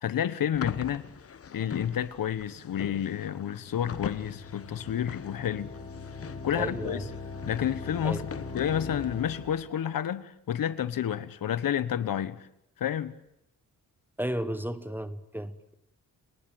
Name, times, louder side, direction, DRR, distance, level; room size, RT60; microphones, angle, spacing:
voice 1, 0.0-1.0 1.5-5.7 6.4-7.1 7.5-12.5 12.8-13.1, left 9 dB, 80° left, 1.4 m, -30 dB
sound 1, 0.5-9.6, left 7 dB, 45° left, 1.2 m, -42 dB
sound 2, 2.9-9.7, left 4 dB, 20° left, 5.6 m, -41 dB
voice 2, 6.5-7.1 8.0-8.2 14.2-15.7, right 1 dB, 5° right, 1.1 m, -34 dB
29.5 x 19.5 x 9.2 m
wide cardioid pair, 170°, 33 cm